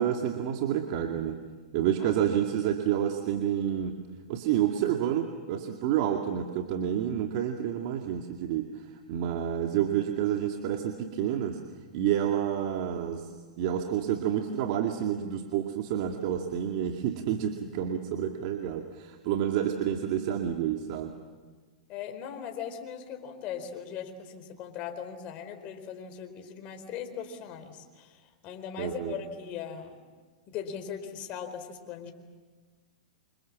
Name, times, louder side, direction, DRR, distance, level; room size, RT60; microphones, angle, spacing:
voice 1, 0.0-1.4 1.7-4.0 4.3-11.6 11.9-13.3 13.6-21.2 28.8-29.2, right 10 dB, 50° right, 3 dB, 2.2 m, -29 dB
voice 2, 21.9-30.0 30.5-32.1, left 8 dB, 35° left, 6 dB, 4.4 m, -39 dB
28.0 x 27.0 x 7.5 m, 1.4 s
hypercardioid pair, 130°, 4 cm